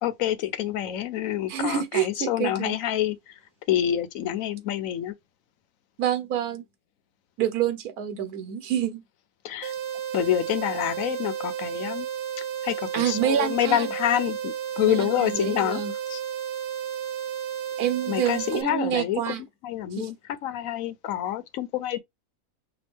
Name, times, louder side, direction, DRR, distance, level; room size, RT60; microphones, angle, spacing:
voice 1, 0.0-3.3 3.7-5.1 9.4-9.7 10.1-12.1 12.6-15.8 16.1-16.2 18.1-19.4 19.6-22.0, left 11 dB, 70° left, 1.0 m, -27 dB
voice 2, 1.5-2.8 6.0-6.6 7.4-9.0 12.9-13.9 14.8-15.9 17.8-19.4 19.9-20.1, right 10 dB, 85° right, 1.2 m, -27 dB
sound 1, 9.6-18.6, right 9 dB, 60° right, 0.8 m, -32 dB
6.0 x 2.3 x 3.3 m
omnidirectional pair, 1.5 m